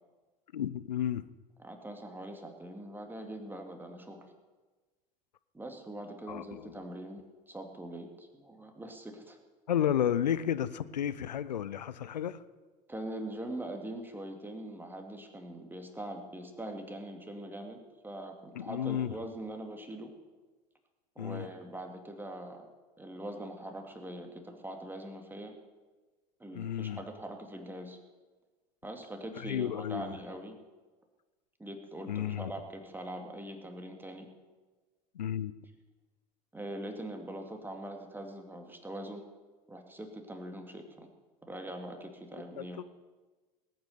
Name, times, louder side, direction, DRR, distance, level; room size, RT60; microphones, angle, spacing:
voice 1, 0.5-1.2 6.3-6.8 9.7-12.4 18.5-19.1 21.2-21.5 26.5-27.0 29.4-30.2 32.1-32.5 35.1-35.5 42.6-42.8, left 10 dB, 85° left, 15 dB, 0.6 m, -32 dB
voice 2, 1.6-4.3 5.5-9.4 12.9-20.1 21.2-22.7 23.0-25.6 26.4-28.0 28.8-30.6 31.6-34.3 36.5-39.2 39.7-41.1 41.5-42.8, right 1 dB, 10° right, 4 dB, 2.4 m, -42 dB
19.0 x 9.0 x 6.8 m, 1.3 s
hypercardioid pair, 80°, 21 cm